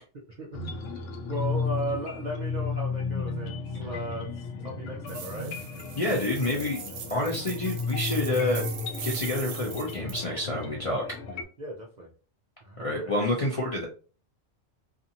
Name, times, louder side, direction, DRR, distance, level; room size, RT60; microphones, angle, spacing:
voice 1, 0.4-0.8 1.3-5.6 11.6-12.1 12.6-13.3, right 2 dB, 60° right, -1 dB, 0.4 m, -36 dB
sound 1, 0.5-11.4, left 4 dB, 80° left, 0.9 m, -34 dB
sound 2, 5.1-10.2, right 7 dB, 80° right, 0.9 m, -41 dB
voice 2, 6.0-6.8 7.1-8.6 9.0-11.0 12.8-13.9, left 1 dB, 45° left, -1 dB, 0.4 m, -28 dB
2.7 x 2.5 x 2.6 m, 0.36 s
omnidirectional pair, 1.3 m